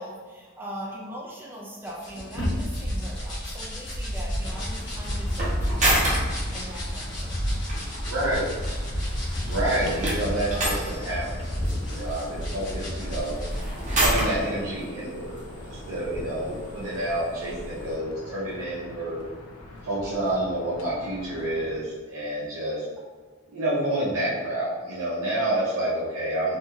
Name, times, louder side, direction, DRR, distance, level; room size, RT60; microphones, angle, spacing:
voice 1, 0.0-7.4 22.4-22.5, equal, 10° right, -3 dB, 0.4 m, -41 dB
sound 1, 1.9-13.6, equal, 55° left, 1.0 m, -31 dB
sound 2, 2.4-17.9, right 1 dB, 35° right, 0.7 m, -32 dB
sound 3, 4.4-21.8, left 1 dB, 90° left, 0.5 m, -43 dB
voice 2, 8.0-8.5 9.4-11.5 11.8-13.4 13.9-15.4 15.7-19.3 19.8-22.8 23.5-26.6, right 1 dB, 80° right, -8 dB, 0.6 m, -28 dB
2.8 x 2.7 x 2.3 m, 1.4 s
head